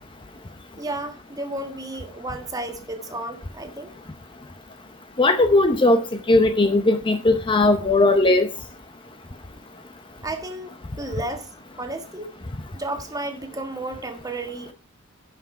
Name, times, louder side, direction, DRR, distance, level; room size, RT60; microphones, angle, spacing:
voice 1, 0.8-3.9 10.2-11.5 11.8-12.3 12.7-14.7, right 2 dB, 15° right, 1.5 m, -32 dB
voice 2, 5.2-6.0 6.3-8.5, left 2 dB, 25° left, 0.7 m, -18 dB
11.0 x 6.0 x 4.4 m
head